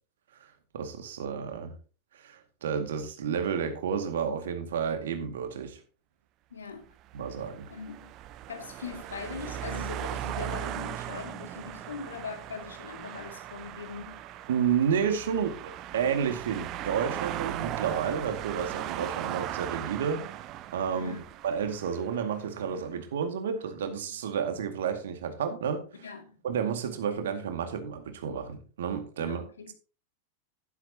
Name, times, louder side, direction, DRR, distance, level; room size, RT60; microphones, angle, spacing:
voice 1, 0.7-1.7 2.1-5.8 7.1-7.7 14.5-20.3 20.7-21.2 21.4-26.1 26.4-29.4, right 7 dB, 60° right, 2.0 m, -31 dB
voice 2, 6.5-6.9 7.7-8.1 8.5-14.2 20.9-21.2 26.0-26.4 29.2-29.7, left 5 dB, 70° left, 2.4 m, -41 dB
sound 1, 7.0-22.4, right 12 dB, 35° right, 0.9 m, -38 dB
11.5 x 11.5 x 2.9 m
figure-of-eight pair, 90°, 0 cm